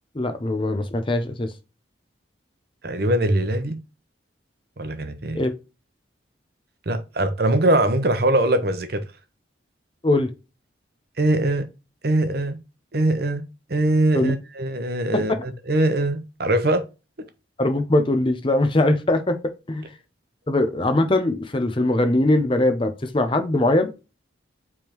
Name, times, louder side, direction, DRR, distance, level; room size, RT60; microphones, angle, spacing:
voice 1, 0.1-1.5 5.3-5.5 10.0-10.3 14.1-14.3 15.1-15.2 17.6-19.8 20.5-23.9, left 1 dB, 25° left, 0.6 m, -21 dB
voice 2, 2.8-3.8 4.8-5.4 6.9-9.0 11.2-11.7 12.0-12.6 12.9-16.8, right 1 dB, 55° right, 0.7 m, -22 dB
5.0 x 3.5 x 2.9 m
head